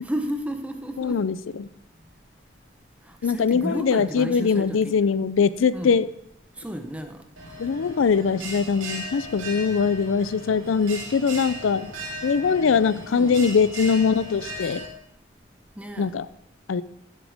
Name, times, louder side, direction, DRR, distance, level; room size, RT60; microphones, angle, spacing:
voice 1, 0.0-1.3 3.0-5.1 5.7-6.0 6.5-7.3 13.1-13.5 15.8-16.2, equal, 5° right, 0.8 m, -33 dB
voice 2, 1.0-1.7 3.2-6.1 7.6-11.9 12.2-14.8 16.0-16.3 16.7-16.8, left 5 dB, 85° left, 0.4 m, -22 dB
Bell, 7.4-14.9, right 1 dB, 85° right, 2.5 m, -37 dB
15.0 x 7.5 x 3.5 m
head